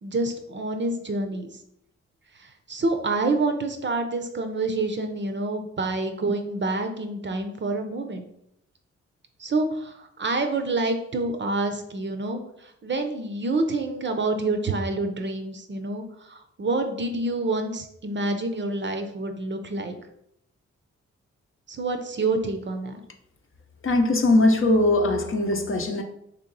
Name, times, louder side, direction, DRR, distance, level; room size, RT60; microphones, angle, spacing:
voice 1, 0.0-1.5 2.7-8.2 9.4-12.4 12.8-19.9 21.7-23.0, right 2 dB, 40° right, 0.6 m, -27 dB
voice 2, 23.8-26.0, left 2 dB, 45° left, 0.7 m, -20 dB
3.1 x 3.0 x 3.9 m
cardioid pair, 55°, 30 cm